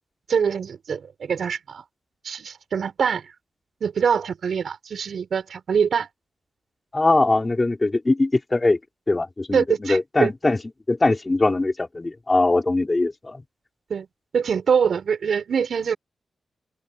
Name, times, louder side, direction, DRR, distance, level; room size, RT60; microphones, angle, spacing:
voice 1, 0.3-1.8 2.2-3.2 3.8-6.1 9.5-10.3 13.9-14.1 14.3-16.0, right 6 dB, 60° right, 6.7 m, -24 dB
voice 2, 6.9-8.8 9.1-10.6 10.9-13.4, left 2 dB, 20° left, 5.4 m, -21 dB
open air
wide cardioid pair, 160°, 0 cm